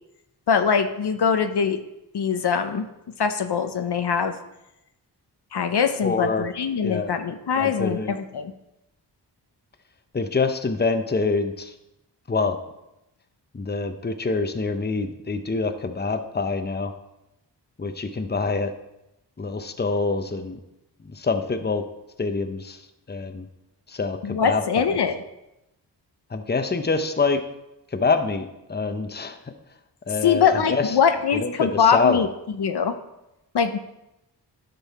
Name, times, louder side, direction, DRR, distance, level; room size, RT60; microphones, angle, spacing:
voice 1, 0.5-1.8 2.1-2.9 3.2-4.3 5.5-8.5 24.2-25.2 30.2-32.3 32.6-33.0 33.5-33.8, left 6 dB, 65° left, 8 dB, 0.8 m, -22 dB
voice 2, 6.0-6.5 6.8-7.1 7.6-8.1 10.1-11.7 12.3-12.6 13.5-16.9 17.8-18.7 19.4-20.6 21.0-21.9 22.2-22.8 23.1-23.5 23.9-25.0 26.3-27.4 27.9-29.4 30.1-31.0 31.3-32.3, left 4 dB, 25° left, 8 dB, 0.8 m, -26 dB
12.0 x 5.5 x 4.2 m, 0.90 s
cardioid pair, 55°, 43 cm